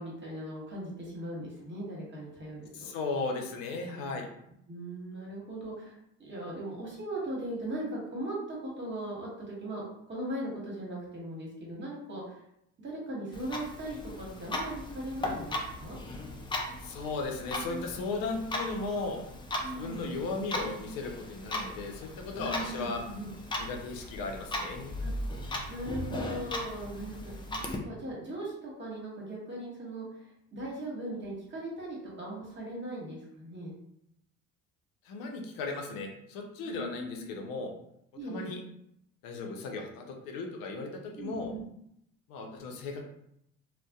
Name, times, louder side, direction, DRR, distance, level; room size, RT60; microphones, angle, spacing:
voice 1, 0.0-2.9 4.7-12.4 12.8-16.0 19.6-20.1 22.4-23.3 25.0-25.1 25.7-30.2 30.5-33.7 36.6-37.2 38.1-38.5 41.2-41.6, right 1 dB, 30° right, -4 dB, 1.3 m, -39 dB
voice 2, 2.7-4.3 16.8-19.2 19.7-23.0 23.6-25.0 35.0-37.7 38.3-38.6 39.2-41.5 42.3-43.0, left 3 dB, 65° left, 3 dB, 0.6 m, -36 dB
Clock, 13.3-27.8, left 1 dB, 15° left, 0.3 m, -38 dB
2.5 x 2.1 x 2.3 m, 0.77 s
hypercardioid pair, 70°, 38 cm